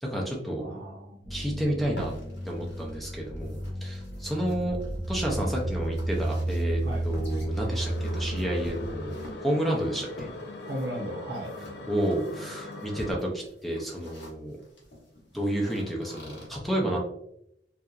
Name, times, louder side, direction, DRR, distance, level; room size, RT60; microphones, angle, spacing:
voice 1, 0.0-0.6 1.3-2.1 2.5-4.8 5.1-9.2 9.4-10.3 11.9-14.6 15.3-17.0, right 1 dB, ahead, -1 dB, 0.4 m, -30 dB
voice 2, 0.6-1.3 6.8-7.0 10.7-11.5, equal, 70° right, -1 dB, 0.8 m, -36 dB
sound 1, 1.2-9.1, right 1 dB, 35° left, 0.8 m, -32 dB
sound 2, 1.8-16.5, left 1 dB, 85° left, 0.9 m, -48 dB
sound 3, 7.7-13.1, left 2 dB, 65° left, 0.4 m, -40 dB
2.8 x 2.3 x 2.3 m, 0.76 s
head